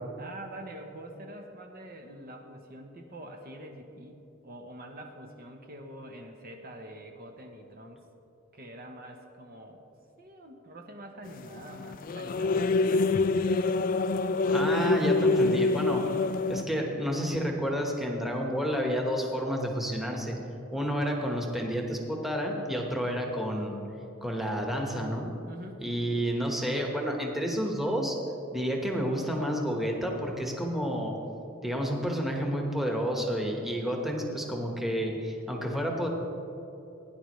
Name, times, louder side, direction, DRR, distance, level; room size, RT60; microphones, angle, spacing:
voice 1, 0.2-8.0 8.5-9.8 10.2-13.1 25.5-25.8, right 1 dB, 45° right, 3 dB, 0.9 m, -45 dB
sound 1, 11.3-16.6, left 3 dB, 40° left, 0.3 m, -26 dB
voice 2, 14.5-16.0 16.5-20.3 20.7-23.8 24.2-25.3 25.8-28.2 28.5-31.1 31.6-36.1, equal, ahead, 0 dB, 1.2 m, -30 dB
17.0 x 10.5 x 3.1 m, 3.0 s
head